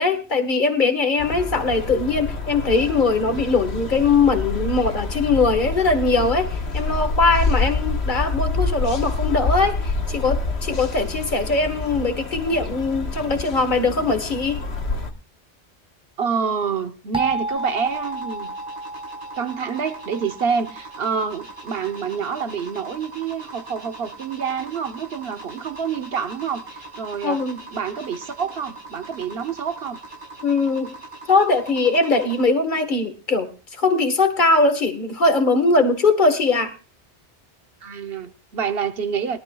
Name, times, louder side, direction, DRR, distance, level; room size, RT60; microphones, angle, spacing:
voice 1, 0.0-14.6 27.2-27.6 30.4-30.9 31.3-36.7, left 3 dB, 45° left, 1.6 m, -21 dB
sound 1, 1.2-15.1, left 3 dB, 70° left, 1.5 m, -27 dB
voice 2, 16.2-18.5 19.4-27.4 27.7-30.0 37.8-39.4, right 6 dB, 60° right, 1.1 m, -27 dB
sound 2, 17.1-21.8, right 1 dB, 5° right, 0.5 m, -33 dB
sound 3, 17.6-32.4, right 3 dB, 90° right, 5.0 m, -41 dB
21.5 x 12.0 x 2.3 m
omnidirectional pair, 1.2 m